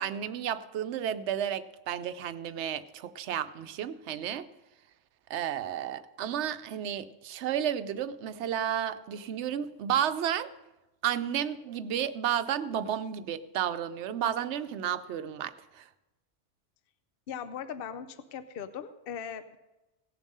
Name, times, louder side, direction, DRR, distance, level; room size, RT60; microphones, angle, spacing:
voice 1, 0.0-4.5 5.3-10.5 11.0-15.8, right 9 dB, 75° right, 13 dB, 0.9 m, -32 dB
voice 2, 17.3-19.6, left 8 dB, 60° left, 11 dB, 0.8 m, -39 dB
17.0 x 7.2 x 5.4 m, 1.0 s
omnidirectional pair, 1.2 m